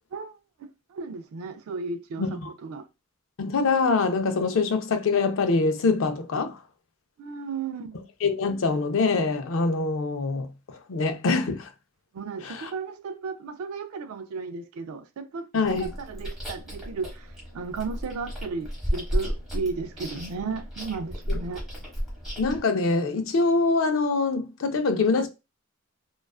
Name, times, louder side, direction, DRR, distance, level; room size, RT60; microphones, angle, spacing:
voice 1, 0.1-2.2 2.6-2.9 7.2-8.0 12.1-21.7, right 4 dB, 85° right, 0.4 m, -34 dB
voice 2, 3.4-6.6 8.2-11.7 12.4-12.7 15.5-15.9 22.4-25.3, left 4 dB, 65° left, 0.4 m, -24 dB
Chewing mastication, 15.6-22.6, equal, ahead, 0.9 m, -33 dB
2.3 x 2.3 x 2.3 m
head